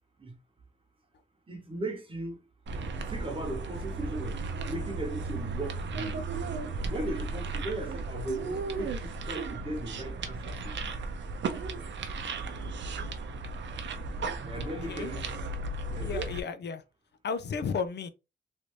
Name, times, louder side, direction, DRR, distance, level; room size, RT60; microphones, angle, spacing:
voice 1, 1.5-2.4 3.1-6.2 6.9-10.9 14.4-15.2 15.9-16.1, right 1 dB, 25° right, 1.0 m, -37 dB
sound 1, 2.7-16.4, right 3 dB, 70° right, 0.5 m, -35 dB
voice 2, 14.6-15.1 16.0-16.8 17.2-18.1, left 6 dB, 60° left, 0.4 m, -34 dB
3.2 x 2.6 x 3.1 m
wide cardioid pair, 120°, 20 cm